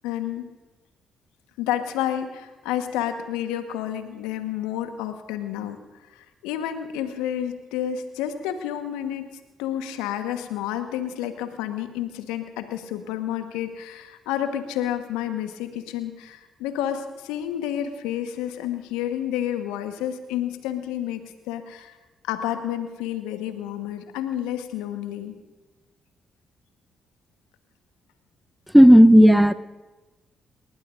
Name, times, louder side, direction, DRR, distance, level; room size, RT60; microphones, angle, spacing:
voice 1, 0.0-0.5 1.6-5.8 6.1-9.3 9.6-21.9 22.2-25.3, left 11 dB, 75° left, 8 dB, 1.3 m, -30 dB
voice 2, 28.7-29.5, equal, 5° right, 13 dB, 0.8 m, -11 dB
29.0 x 19.0 x 2.6 m, 1.2 s
hypercardioid pair, 40°, 0 cm